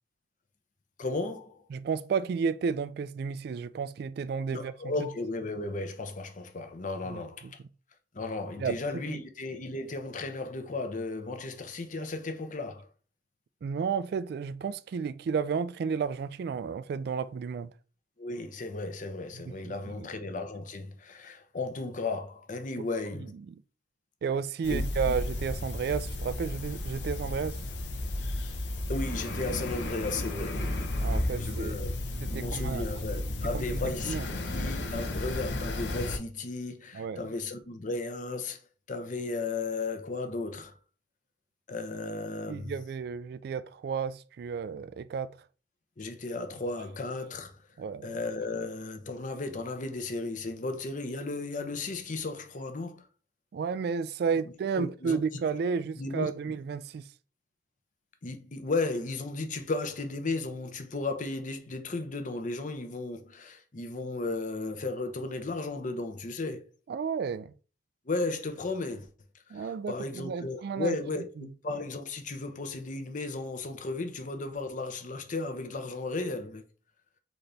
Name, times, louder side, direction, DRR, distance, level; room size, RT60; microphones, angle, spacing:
voice 1, 1.0-1.6 4.5-7.6 8.1-12.9 18.2-23.3 24.7-25.1 28.9-30.8 31.4-31.9 32.3-34.1 34.5-38.6 38.9-40.8 41.7-42.7 46.0-47.6 48.0-53.0 54.7-55.2 56.0-56.3 58.2-66.6 68.1-69.1 69.5-76.6, left 3 dB, 45° left, 0.7 m, -35 dB
voice 2, 1.7-4.7 7.0-7.5 8.6-8.8 9.1-9.2 13.6-17.7 19.4-20.1 23.5-23.6 24.2-27.6 31.0-31.8 32.2-33.0 33.5-34.3 36.9-37.2 42.5-45.3 47.8-48.2 53.5-57.1 66.9-67.5 69.5-71.0 71.4-71.5, right 6 dB, 60° right, 0.3 m, -32 dB
sound 1, 24.6-36.2, left 1 dB, 85° left, 0.9 m, -33 dB
4.1 x 3.9 x 3.3 m
head